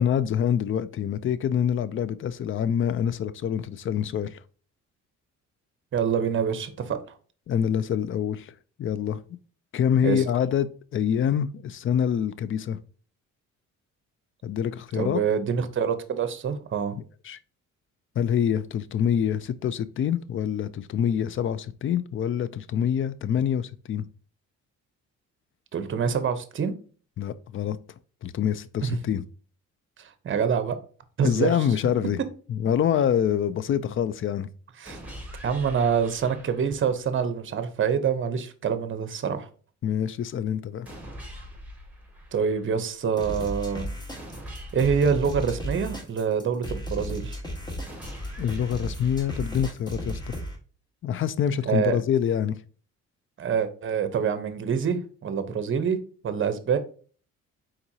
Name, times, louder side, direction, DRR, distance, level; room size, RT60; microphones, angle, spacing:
voice 1, 0.0-4.4 7.5-8.5 8.8-9.2 9.7-12.8 14.4-15.2 16.9-17.4 18.2-24.1 27.2-27.8 28.2-29.2 31.2-32.2 32.5-34.5 39.8-40.9 48.4-50.4 51.0-52.6, left 8 dB, 45° left, 0.4 m, -26 dB
voice 2, 5.9-7.0 10.0-10.2 14.9-17.0 25.7-26.7 28.8-29.0 30.0-30.8 31.2-31.5 34.8-35.0 35.4-39.5 42.3-43.9 44.7-47.4 51.7-52.0 53.4-56.0 56.2-56.8, right 7 dB, 40° right, 0.8 m, -26 dB
sound 1, 34.9-36.9 40.9-42.9 44.2-46.2 47.9-49.9, equal, 5° right, 2.0 m, -43 dB
sound 2, 43.2-50.6, equal, 15° left, 1.4 m, -34 dB
4.4 x 3.8 x 2.7 m
cardioid pair, 90°, 30 cm